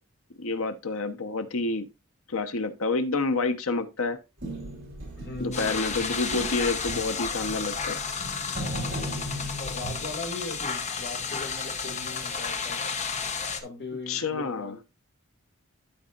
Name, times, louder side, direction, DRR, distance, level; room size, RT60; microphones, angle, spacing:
voice 1, 0.4-1.9 2.3-4.2 5.4-8.0 14.1-14.8, left 3 dB, 80° left, 1.0 m, -28 dB
sound 1, 4.4-10.1, equal, 50° right, 3.5 m, -37 dB
voice 2, 5.2-6.1 9.6-12.8 13.6-14.9, left 2 dB, 55° left, 2.2 m, -39 dB
sound 2, 5.5-13.6, left 5 dB, 35° left, 1.0 m, -32 dB
12.5 x 5.5 x 2.5 m
head